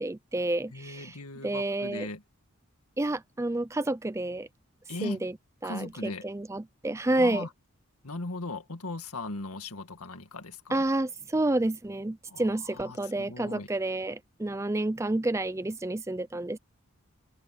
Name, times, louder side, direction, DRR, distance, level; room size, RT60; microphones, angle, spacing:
voice 1, 0.0-1.1 1.4-2.1 3.0-4.5 5.0-5.3 5.6-7.5 10.7-16.6, right 2 dB, 15° right, 0.4 m, -29 dB
voice 2, 0.7-2.2 4.9-5.2 5.6-6.3 7.2-7.5 8.0-10.8 12.3-13.7, left 2 dB, 80° left, 2.0 m, -38 dB
open air
head